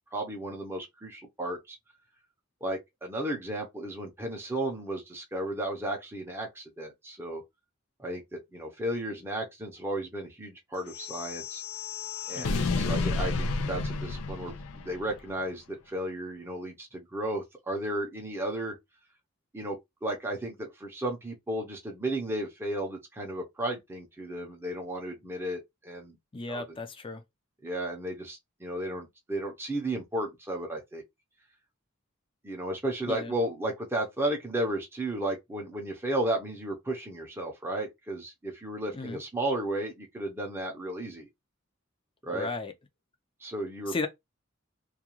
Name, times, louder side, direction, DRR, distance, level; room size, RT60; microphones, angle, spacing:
voice 1, 0.1-1.8 2.6-7.4 8.0-11.6 12.3-18.7 19.5-26.2 26.5-26.7 27.6-31.0 32.4-41.3 42.2-42.5 43.4-43.9, right 1 dB, 10° right, 0.6 m, -34 dB
sound 1, 10.9-15.2, left 3 dB, 90° left, 0.4 m, -31 dB
voice 2, 26.3-27.2 33.1-33.3 38.9-39.2 42.3-42.7 43.9-44.1, left 3 dB, 25° left, 0.5 m, -35 dB
2.4 x 2.3 x 2.9 m
head